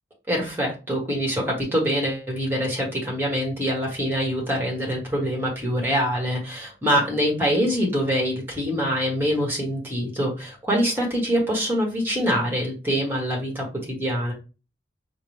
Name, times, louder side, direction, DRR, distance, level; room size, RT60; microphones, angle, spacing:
voice 1, 0.3-14.3, equal, 15° right, -2 dB, 1.3 m, -24 dB
5.6 x 2.1 x 3.2 m, 0.32 s
head